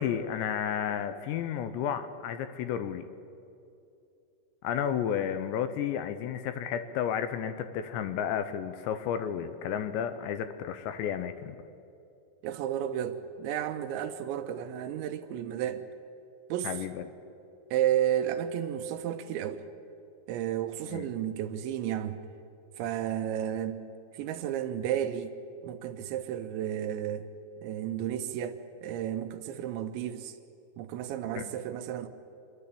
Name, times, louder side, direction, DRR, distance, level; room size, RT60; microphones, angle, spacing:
voice 1, 0.0-3.1 4.6-11.6 16.6-17.0 20.9-21.1 31.4-31.5, left 8 dB, 80° left, 10 dB, 2.8 m, -32 dB
voice 2, 12.4-15.8 16.5-16.7 17.7-19.6 20.3-22.2 22.8-23.8 24.1-25.3 25.6-27.3 27.6-30.4 30.8-32.1, right 10 dB, 80° right, 8 dB, 3.0 m, -32 dB
27.0 x 11.5 x 8.5 m, 2.7 s
omnidirectional pair, 5.5 m